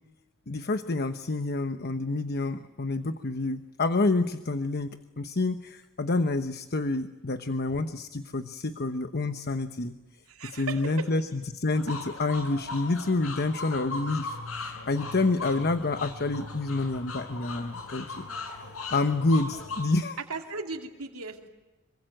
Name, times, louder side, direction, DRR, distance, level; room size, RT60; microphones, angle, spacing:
voice 1, 0.5-9.9 10.5-18.3 18.9-20.4, left 2 dB, 45° left, 9 dB, 1.0 m, -28 dB
voice 2, 10.3-11.1 20.3-21.5, right 3 dB, 90° right, 2 dB, 2.6 m, -37 dB
sound 1, 11.7-19.8, left 3 dB, 75° left, 5.9 m, -38 dB
26.0 x 24.0 x 9.1 m, 1.1 s
head